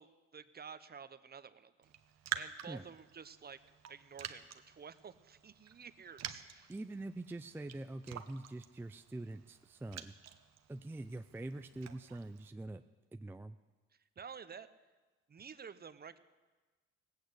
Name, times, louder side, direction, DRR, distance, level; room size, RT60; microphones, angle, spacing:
voice 1, 0.0-1.9 2.3-3.6 3.9-6.7 13.9-14.7 15.3-16.2, right 6 dB, 30° right, 11 dB, 0.8 m, -51 dB
Raindrop, 1.8-12.5, right 9 dB, 60° right, 1.0 m, -48 dB
voice 2, 6.7-10.1 10.7-12.8 13.1-13.6, right 2 dB, 5° right, 9 dB, 0.4 m, -44 dB
18.0 x 8.6 x 8.0 m, 1.3 s
cardioid pair, 90°, 30 cm